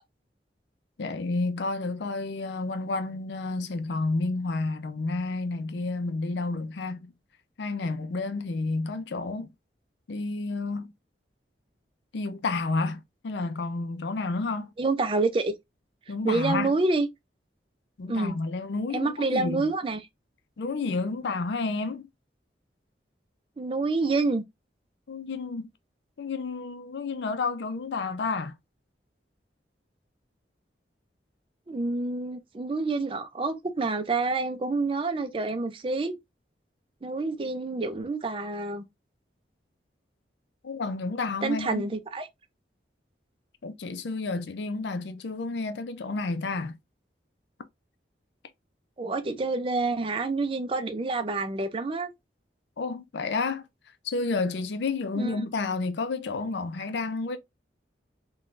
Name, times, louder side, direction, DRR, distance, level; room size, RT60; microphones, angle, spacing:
voice 1, 1.0-7.1 7.6-9.5 10.1-10.9 12.1-14.7 16.1-16.7 18.0-19.7 20.6-22.1 25.1-25.7 26.2-28.5 40.6-41.8 43.6-46.8 52.8-53.6 54.0-57.4, left 3 dB, 75° left, 0.4 m, -30 dB
voice 2, 14.8-15.5 16.2-17.1 18.1-18.4 18.9-20.0 23.6-24.4 31.7-36.2 37.0-38.9 41.4-42.3 49.0-52.1 55.2-55.4, right 3 dB, 30° right, 0.4 m, -28 dB
3.6 x 2.2 x 2.5 m
head